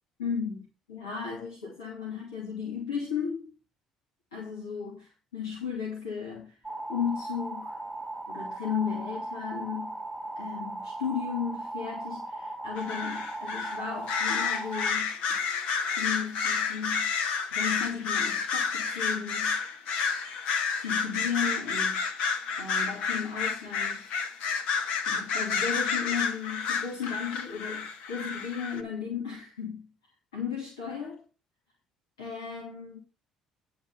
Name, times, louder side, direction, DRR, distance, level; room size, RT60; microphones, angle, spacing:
voice 1, 0.2-3.5 4.3-6.6 6.9-7.8 8.3-10.0 10.4-15.5 16.0-17.1 17.5-19.6 20.8-22.1 22.6-24.1 25.1-29.9 30.3-31.2 32.2-33.0, left 7 dB, 85° left, 2.6 m, -35 dB
sound 1, 6.6-14.9, right 2 dB, 5° right, 1.7 m, -38 dB
sound 2, 12.8-13.8 14.1-28.8, left 5 dB, 65° left, 1.4 m, -30 dB
10.5 x 4.7 x 7.1 m
hypercardioid pair, 55°, 2 cm